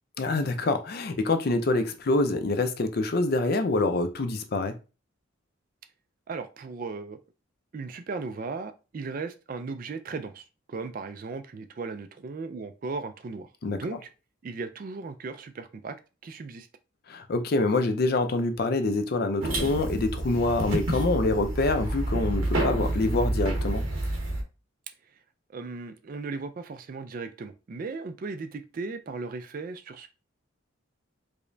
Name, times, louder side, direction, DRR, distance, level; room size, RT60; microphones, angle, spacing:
voice 1, 0.2-4.8 13.6-13.8 17.1-23.8, left 2 dB, 45° left, 0.4 m, -26 dB
voice 2, 6.3-7.2 7.7-14.1 14.4-16.0 16.2-16.7 25.5-30.1, right 4 dB, 40° right, 0.3 m, -37 dB
sound 1, 19.4-24.4, right 1 dB, 75° right, 0.9 m, -29 dB
4.9 x 2.1 x 2.6 m
head